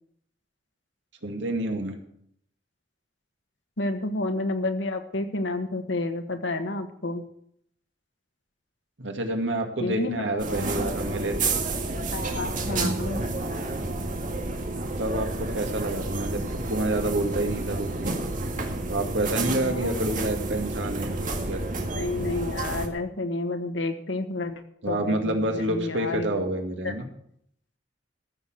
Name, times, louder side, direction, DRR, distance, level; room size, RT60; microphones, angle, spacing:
voice 1, 1.2-2.0 9.0-11.6 15.0-18.1 18.9-21.6 24.8-27.1, right 1 dB, 80° right, 4 dB, 2.2 m, -28 dB
voice 2, 3.8-7.2 9.8-10.6 12.1-13.2 19.6-20.0 21.9-26.3 26.8-26.9, left 2 dB, 85° left, 7 dB, 1.5 m, -30 dB
sound 1, 10.4-22.9, right 2 dB, 45° right, 2.0 m, -30 dB
14.5 x 6.9 x 7.8 m, 0.70 s
head